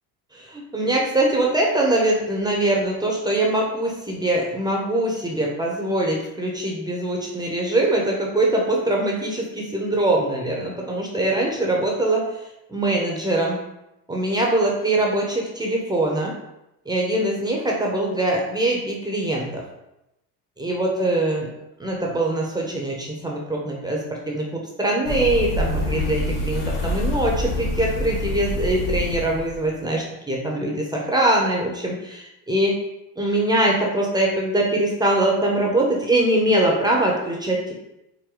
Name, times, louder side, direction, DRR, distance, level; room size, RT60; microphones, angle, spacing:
voice 1, 0.3-12.4 12.7-13.6 14.1-16.3 16.8-19.6 20.6-21.5 21.8-32.8 33.2-37.7, right 1 dB, 10° right, -2 dB, 0.9 m, -23 dB
sound 1, 25.0-29.6, left 1 dB, 55° left, 1.1 m, -26 dB
4.7 x 2.1 x 3.9 m, 0.89 s
supercardioid pair, 85°, 40 cm